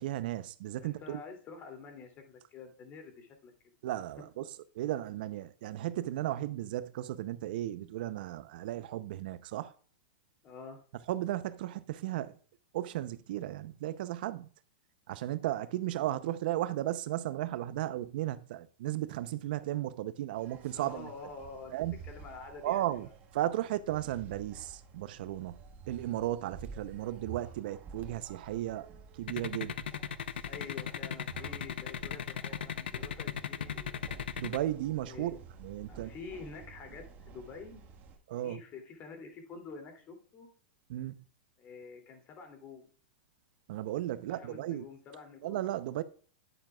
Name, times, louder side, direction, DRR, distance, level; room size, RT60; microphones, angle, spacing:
voice 1, 0.0-1.2 3.8-4.4 4.7-9.7 11.1-12.3 12.7-14.5 15.1-21.1 21.7-21.9 22.6-23.1 23.3-25.6 25.9-28.9 29.2-29.9 34.4-36.1 38.3-38.6 40.9-41.1 43.7-44.8 45.4-46.0, right 14 dB, 60° right, 0.6 m, -35 dB
voice 2, 0.8-3.5 4.2-4.3 10.4-10.8 20.7-21.8 22.0-22.9 30.4-34.0 35.0-35.4 35.9-37.8 38.3-40.5 41.6-42.9 44.2-45.6, left 4 dB, 30° left, 2.6 m, -48 dB
sound 1, 20.3-38.2, right 5 dB, 30° right, 1.4 m, -51 dB
sound 2, 29.3-34.6, left 8 dB, 85° left, 0.7 m, -36 dB
10.0 x 8.8 x 2.3 m
hypercardioid pair, 130°, 6 cm